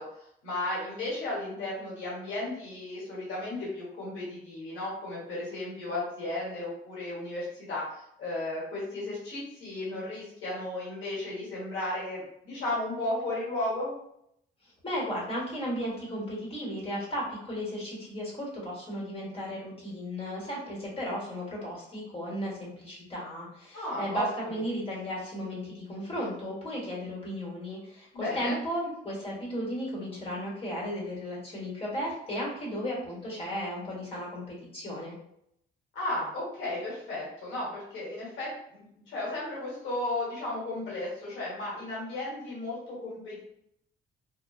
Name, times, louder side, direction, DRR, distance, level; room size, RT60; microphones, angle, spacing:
voice 1, 0.0-14.0 23.7-24.6 28.1-28.6 35.9-43.4, left 2 dB, 90° left, -6 dB, 1.2 m, -34 dB
voice 2, 14.8-35.1, equal, 30° left, -4 dB, 1.3 m, -35 dB
2.9 x 2.2 x 2.3 m, 0.76 s
cardioid pair, 90°, 20 cm